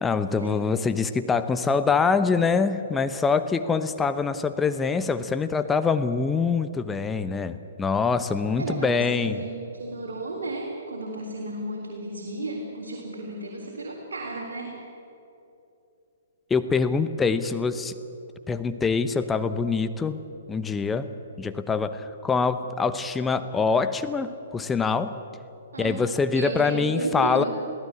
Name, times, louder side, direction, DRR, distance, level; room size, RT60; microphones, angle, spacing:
voice 1, 0.0-9.4 16.5-18.0 18.5-20.2 20.5-21.1 21.4-25.1 25.8-27.4, left 5 dB, 10° left, 10 dB, 0.9 m, -24 dB
voice 2, 8.6-14.8 25.7-26.0 26.3-27.5, right 2 dB, 70° right, -1 dB, 3.7 m, -33 dB
23.0 x 16.0 x 8.5 m, 2.8 s
figure-of-eight pair, 125°, 0 cm